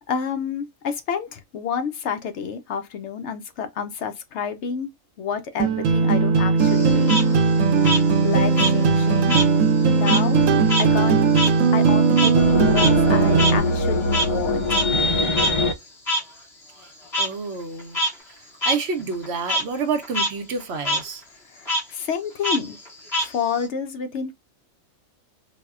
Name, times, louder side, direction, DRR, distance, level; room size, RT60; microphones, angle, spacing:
voice 1, 0.1-4.9 5.2-7.1 8.2-9.4 9.8-10.4 10.8-11.2 11.7-14.8 21.5-22.8 23.2-24.3, left 6 dB, 70° left, 0.8 m, -29 dB
sound 1, 5.6-13.6, right 5 dB, 85° right, 1.0 m, -18 dB
Frog, 6.6-9.5 9.8-14.4 14.7-14.8 15.4-15.5 16.1-16.2 17.1-17.3 17.8-18.1 18.6-18.8 19.1-19.6 20.0-20.3 20.6-21.0 21.7-21.8 22.4-23.7, equal, 25° left, 1.3 m, -25 dB
sound 2, 12.3-15.7, left 2 dB, 40° left, 0.4 m, -22 dB
voice 2, 17.2-18.0 18.6-21.2, right 4 dB, 65° right, 0.8 m, -28 dB
3.9 x 2.1 x 2.3 m
omnidirectional pair, 1.3 m